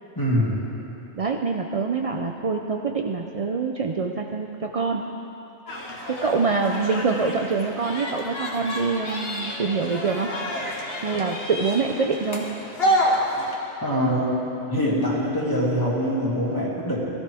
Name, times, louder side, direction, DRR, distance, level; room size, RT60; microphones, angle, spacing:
voice 1, 0.2-0.6 13.8-14.4 14.7-17.1, equal, 15° left, -6 dB, 2.3 m, -23 dB
voice 2, 1.2-5.0 6.1-10.3 11.0-12.4, right 4 dB, 70° right, 2 dB, 0.3 m, -25 dB
sound 1, 5.7-13.5, equal, 50° left, 1.6 m, -29 dB
19.5 x 13.0 x 3.5 m, 2.9 s
omnidirectional pair, 1.4 m